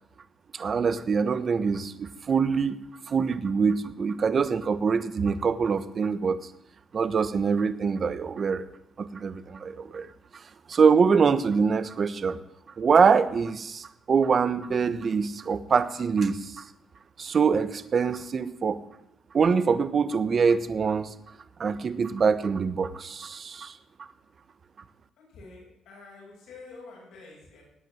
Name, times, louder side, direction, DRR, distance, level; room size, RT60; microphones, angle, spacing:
voice 1, 0.5-2.8 3.1-6.4 6.9-8.7 9.0-10.1 10.7-12.4 12.8-16.6 17.2-18.8 19.3-21.1 21.6-24.1, right 5 dB, 45° right, 12 dB, 1.2 m, -24 dB
voice 2, 25.2-27.6, left 3 dB, 80° left, -2 dB, 7.6 m, -48 dB
18.5 x 9.3 x 7.9 m, 0.79 s
cardioid pair, 90°, 0 cm